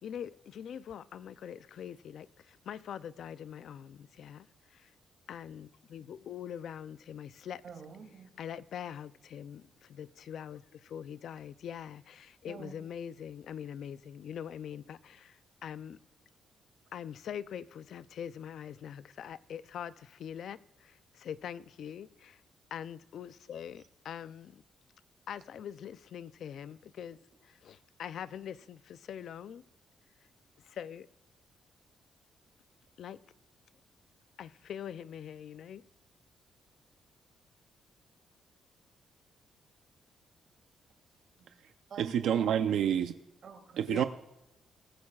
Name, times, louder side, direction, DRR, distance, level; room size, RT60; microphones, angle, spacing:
voice 1, 0.0-4.9 5.3-7.6 8.4-16.0 16.9-22.4 22.7-24.6 25.3-29.6 30.6-31.1 33.0-33.2 34.4-35.8 43.9-44.0, left 9 dB, 65° left, 0.4 m, -43 dB
voice 2, 7.6-8.3 12.5-12.7 41.4-41.5 41.9-42.6 43.4-43.8, right 5 dB, 55° right, 2.2 m, -46 dB
voice 3, 42.0-43.1 43.8-44.0, right 9 dB, 85° right, 0.6 m, -28 dB
22.5 x 13.5 x 2.4 m
cardioid pair, 135°, 0 cm